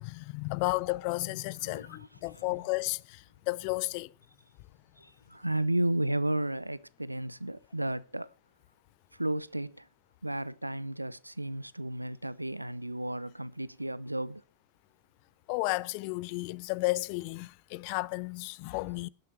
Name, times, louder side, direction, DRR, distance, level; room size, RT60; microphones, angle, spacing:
voice 1, 0.0-4.1 15.5-19.1, left 23 dB, 45° left, 0.5 m, -33 dB
voice 2, 1.6-2.1 2.3-2.4 5.0-8.3 9.1-9.9 10.2-14.4, right 1 dB, 85° right, 0.6 m, -33 dB
17.5 x 12.0 x 3.0 m
figure-of-eight pair, 90°, 0 cm